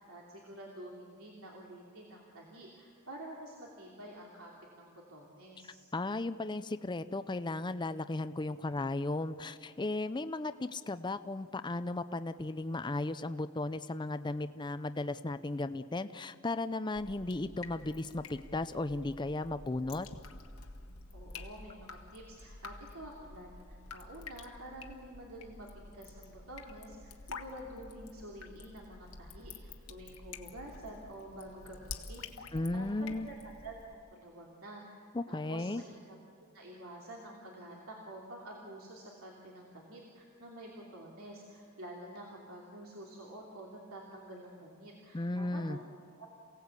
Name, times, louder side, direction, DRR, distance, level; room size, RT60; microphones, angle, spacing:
voice 1, 0.0-4.5 4.8-5.8 21.1-25.7 25.9-33.4 33.6-33.7 34.1-36.2 36.5-45.9 46.2-46.3, right 1 dB, 75° right, -2 dB, 2.9 m, -49 dB
voice 2, 5.9-20.1 32.5-33.3 35.1-35.8 45.1-45.8, left 2 dB, 20° left, 11 dB, 0.5 m, -35 dB
Drip, 17.0-33.9, left 4 dB, 80° left, 1.5 m, -49 dB
28.0 x 17.5 x 8.2 m, 2.3 s
head